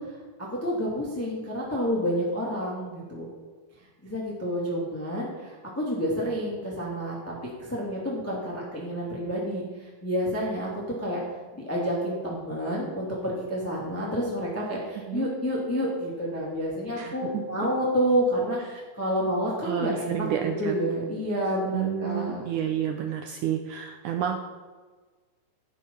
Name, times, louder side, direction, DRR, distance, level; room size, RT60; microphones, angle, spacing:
voice 1, 0.0-3.3 4.0-11.2 11.5-22.4, equal, 5° left, -4 dB, 1.8 m, -29 dB
voice 2, 17.0-17.4 18.7-18.8 19.6-20.8 21.7-24.4, right 9 dB, 85° right, 5 dB, 1.7 m, -30 dB
14.0 x 6.7 x 5.6 m, 1.4 s
omnidirectional pair, 4.3 m